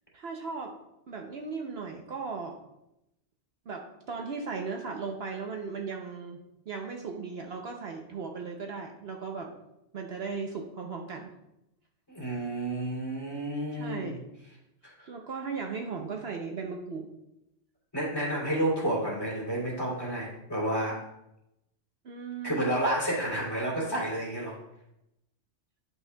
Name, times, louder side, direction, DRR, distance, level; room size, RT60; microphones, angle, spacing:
voice 1, 0.1-0.8 1.1-2.6 3.7-6.4 6.7-9.5 9.9-11.3 13.7-14.2 15.1-17.1 22.0-22.8, right 5 dB, 60° right, 2 dB, 0.9 m, -37 dB
voice 2, 12.1-14.2 14.8-15.1 17.9-21.0 22.4-24.5, right 1 dB, 20° left, -4 dB, 2.7 m, -30 dB
10.5 x 5.6 x 2.3 m, 0.87 s
omnidirectional pair, 1.2 m